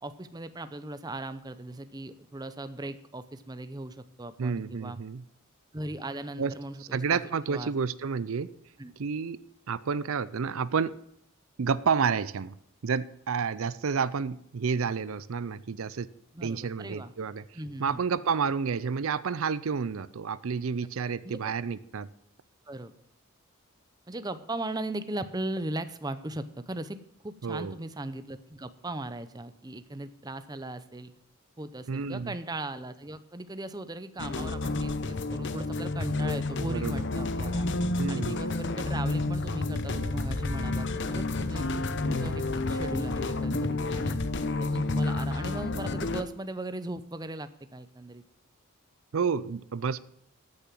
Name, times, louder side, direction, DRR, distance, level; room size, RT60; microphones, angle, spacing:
voice 1, 0.0-5.0 5.7-7.2 7.5-7.7 8.8-8.9 16.3-17.1 17.5-18.0 21.2-21.5 22.7-22.9 24.1-31.1 31.6-37.7 38.1-44.2 44.6-48.2, right 1 dB, 15° right, 12 dB, 0.6 m, -38 dB
voice 2, 4.4-5.2 6.4-6.5 6.9-8.5 9.0-10.9 11.6-12.6 12.8-16.1 16.4-17.4 17.8-22.1 27.4-27.8 31.9-32.3 36.6-37.0 38.0-38.4 49.1-50.0, right 5 dB, 70° right, 17 dB, 0.5 m, -30 dB
sound 1, 34.2-46.2, left 2 dB, 50° left, 0.8 m, -30 dB
13.5 x 6.9 x 7.4 m, 0.74 s
head